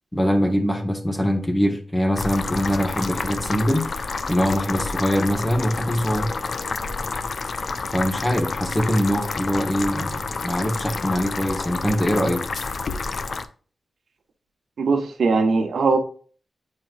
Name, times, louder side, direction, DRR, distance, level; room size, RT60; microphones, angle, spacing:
voice 1, 0.1-6.3 7.9-12.4, equal, 10° left, 3 dB, 1.3 m, -23 dB
sound 1, 2.1-13.4, left 4 dB, 50° left, 0.5 m, -29 dB
voice 2, 14.8-16.0, right 4 dB, 80° right, 4 dB, 1.2 m, -20 dB
9.4 x 4.4 x 2.4 m, 0.42 s
wide cardioid pair, 150°, 0 cm